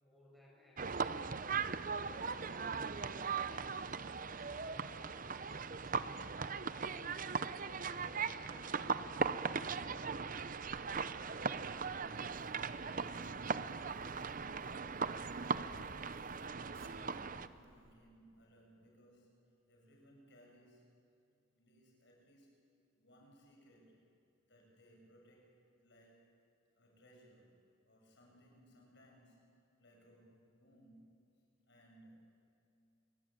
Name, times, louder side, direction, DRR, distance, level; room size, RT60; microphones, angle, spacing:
voice 1, 0.0-1.6 2.0-3.7 4.3-6.3 6.7-7.9 8.4-10.5, equal, ahead, -4 dB, 6.4 m, -61 dB
sound 1, 0.8-17.5, right 5 dB, 45° right, 0.7 m, -39 dB
Zipper (clothing), 10.4-17.9, right 1 dB, 75° right, 3.3 m, -62 dB
voice 2, 16.5-20.9 21.6-22.6 22.9-24.0 24.4-26.4 26.7-29.4 29.8-31.4 31.7-32.4, equal, 60° left, 0 dB, 6.8 m, -64 dB
28.0 x 23.0 x 9.0 m, 2.5 s
head